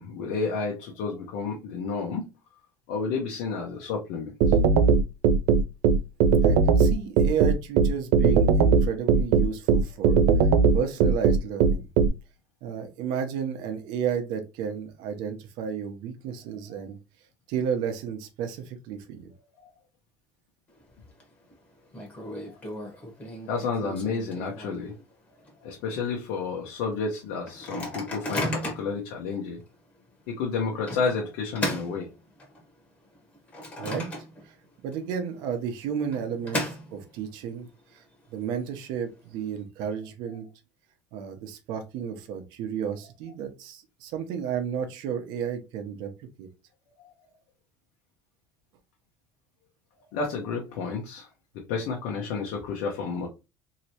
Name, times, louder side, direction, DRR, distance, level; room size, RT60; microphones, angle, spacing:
voice 1, 0.0-2.3 2.9-4.6 23.5-24.9 25.6-29.6 30.3-32.1 50.1-51.3 51.7-53.3, left 4 dB, 85° left, 0 dB, 0.8 m, -31 dB
sound 1, 4.4-12.1, right 5 dB, 85° right, 0.4 m, -19 dB
voice 2, 6.4-10.2 10.7-11.9 12.6-17.0 17.5-19.3 33.8-34.1 34.4-34.5 34.8-37.7 37.9-38.0 38.3-40.5 41.1-46.1 46.4-46.5, right 7 dB, 65° right, 6 dB, 0.8 m, -32 dB
Microwave oven, 20.7-21.2 21.5-21.6 21.9-25.0 25.4-25.5 25.8-26.1 26.6-26.7 27.5-29.0 29.6-29.7 30.9-32.7 33.1-34.6 34.9-35.0 35.9-37.3, left 1 dB, 20° left, 1.0 m, -35 dB
3.1 x 2.8 x 2.8 m, 0.28 s
cardioid pair, 165°, 8 cm